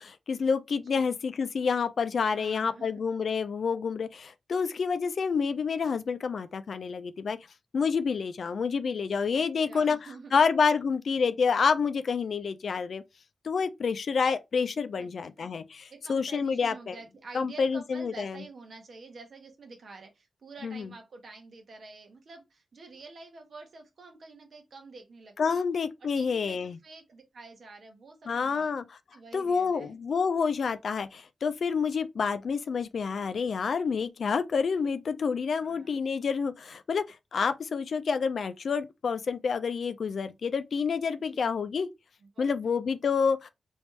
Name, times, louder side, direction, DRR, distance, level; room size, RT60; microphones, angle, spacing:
voice 1, 0.0-7.4 7.7-10.0 10.3-13.0 13.4-17.0 17.3-18.4 20.6-20.9 25.4-26.8 28.3-28.8 29.3-41.9 42.4-43.5, left 5 dB, 75° left, 0.4 m, -28 dB
voice 2, 2.3-3.0 9.3-10.3 14.9-15.5 15.9-25.7 26.0-28.7 29.1-30.0 35.5-36.0 41.2-41.5 42.2-43.0, right 3 dB, 70° right, 1.2 m, -48 dB
3.4 x 3.1 x 3.1 m
cardioid pair, 45°, 0 cm